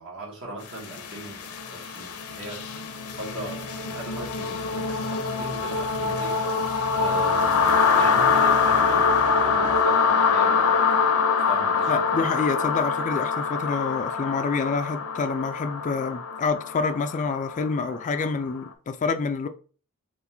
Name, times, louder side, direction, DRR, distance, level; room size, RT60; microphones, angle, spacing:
voice 1, 0.0-2.6 3.0-6.4 6.9-11.2 11.5-12.1, right 1 dB, 65° right, 1.6 m, -39 dB
sound 1, 0.7-18.5, left 5 dB, 70° left, 0.6 m, -24 dB
voice 2, 11.9-19.5, left 4 dB, 35° left, 0.3 m, -27 dB
4.1 x 2.5 x 4.2 m
head